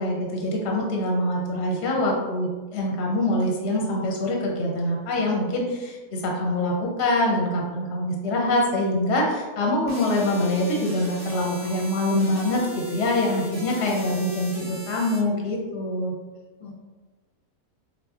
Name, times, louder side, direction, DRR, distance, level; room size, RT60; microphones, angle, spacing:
voice 1, 0.0-16.1, left 1 dB, 60° left, -1 dB, 0.8 m, -24 dB
sound 1, 9.9-15.2, equal, 15° right, 1.0 m, -40 dB
voice 2, 14.2-14.7 16.6-16.8, left 2 dB, 80° left, -5 dB, 0.4 m, -45 dB
5.1 x 2.1 x 2.3 m, 1.3 s
omnidirectional pair, 1.6 m